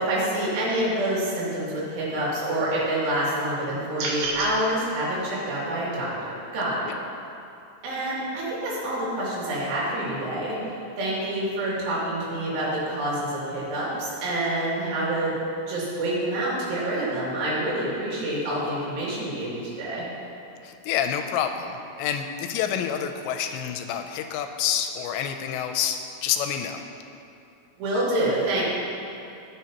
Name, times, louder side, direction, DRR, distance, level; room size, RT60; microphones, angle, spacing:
voice 1, 0.0-6.8 7.8-15.4 15.7-20.1 27.8-28.6, right 1 dB, 90° right, -7 dB, 5.1 m, -27 dB
sound 1, 4.0-4.5, right 3 dB, 70° right, 3.5 m, -28 dB
voice 2, 20.6-21.7 22.0-26.8, left 9 dB, 85° left, 6 dB, 2.7 m, -28 dB
18.0 x 7.0 x 2.9 m, 2.7 s
omnidirectional pair, 5.3 m